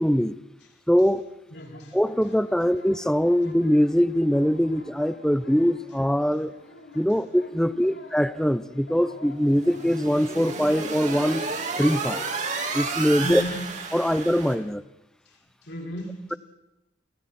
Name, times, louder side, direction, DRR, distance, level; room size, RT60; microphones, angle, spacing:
voice 1, 0.0-0.3 0.9-1.2 1.9-6.5 6.9-11.5 11.8-12.2 12.7-13.4 13.9-14.8, equal, 5° left, 14 dB, 0.8 m, -22 dB
voice 2, 1.5-2.0 6.3-6.5 7.1-7.3 7.7-8.0 12.8-13.7 14.0-14.1 15.2-16.4, equal, 60° left, 0 dB, 6.7 m, -37 dB
sound 1, 1.6-13.0, left 2 dB, 75° left, 7.8 m, -50 dB
sound 2, 9.5-14.5, right 4 dB, 40° right, 3.9 m, -31 dB
29.5 x 27.0 x 4.4 m, 0.97 s
head